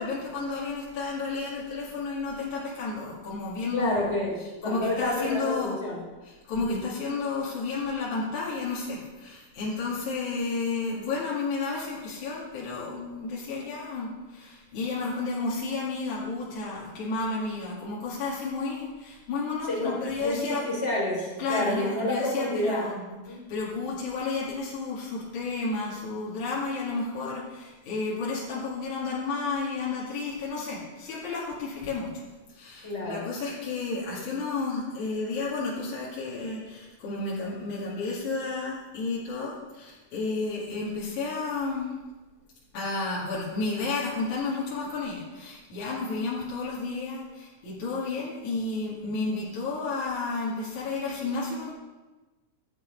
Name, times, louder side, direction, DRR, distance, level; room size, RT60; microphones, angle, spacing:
voice 1, 0.0-4.1 4.6-5.8 6.2-20.6 21.4-32.1 32.5-41.9 42.7-51.7, left 3 dB, 65° left, -7 dB, 3.6 m, -32 dB
voice 2, 3.7-6.0 6.6-6.8 19.7-22.8 23.2-23.4 32.8-33.3, left 1 dB, 20° left, -3 dB, 3.4 m, -29 dB
12.5 x 8.5 x 5.4 m, 1.2 s
omnidirectional pair, 3.8 m